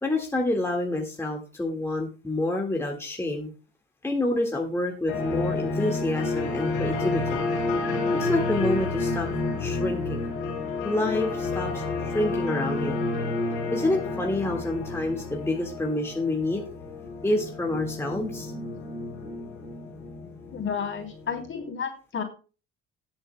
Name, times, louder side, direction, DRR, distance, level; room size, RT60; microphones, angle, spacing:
voice 1, 0.0-3.5 4.0-7.4 8.1-9.3 9.6-10.3 10.8-13.0 13.7-16.6 17.2-18.5, left 2 dB, 10° left, 0 dB, 1.9 m, -28 dB
sound 1, 5.1-21.4, left 3 dB, 85° left, 4.8 m, -30 dB
voice 2, 20.5-22.2, left 6 dB, 40° left, 3 dB, 3.3 m, -31 dB
18.5 x 7.9 x 2.3 m, 0.35 s
supercardioid pair, 75°, 30 cm